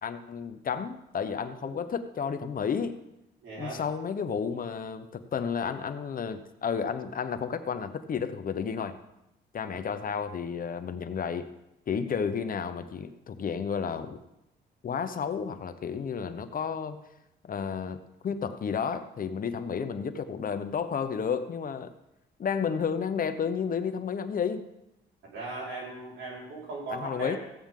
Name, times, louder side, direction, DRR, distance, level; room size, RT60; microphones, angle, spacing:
voice 1, 0.0-3.0 3.6-9.0 9.5-11.5 11.9-14.2 14.8-17.0 17.4-21.9 22.4-24.7 26.9-27.4, left 6 dB, 45° left, 10 dB, 0.9 m, -32 dB
voice 2, 3.4-3.8 9.7-9.9 25.3-27.4, right 2 dB, 75° right, -4 dB, 4.7 m, -38 dB
15.5 x 8.7 x 3.7 m, 0.88 s
cardioid pair, 90°, 20 cm